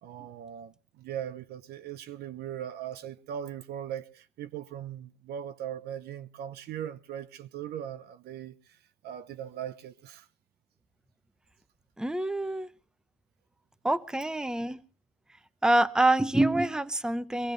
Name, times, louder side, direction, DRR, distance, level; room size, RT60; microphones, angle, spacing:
voice 1, 0.0-8.8 9.0-10.3, right 10 dB, 70° right, 0.9 m, -39 dB
voice 2, 12.0-12.7 13.8-14.8 15.6-17.5, right 1 dB, 5° right, 0.7 m, -26 dB
23.0 x 15.5 x 3.2 m
cardioid pair, 110°, 17 cm